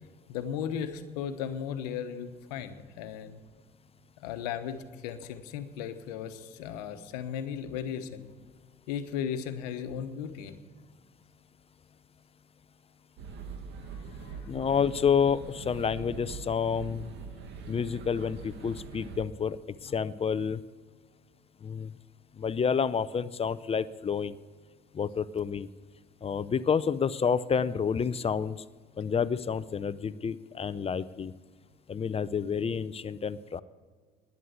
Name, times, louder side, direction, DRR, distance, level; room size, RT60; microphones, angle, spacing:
voice 1, 0.3-3.4 4.2-8.3 8.9-10.5 13.9-14.5, left 8 dB, 85° left, 10 dB, 1.1 m, -36 dB
sound 1, 13.2-19.2, right 5 dB, 65° right, 1.4 m, -43 dB
voice 2, 14.5-17.1 17.7-19.6 19.8-20.6 21.6-21.9 22.4-24.4 24.9-25.7 26.2-28.6 29.0-31.3 31.9-33.6, left 6 dB, 30° left, 17 dB, 0.6 m, -29 dB
11.0 x 9.7 x 8.1 m, 1.5 s
supercardioid pair, 75°, 20 cm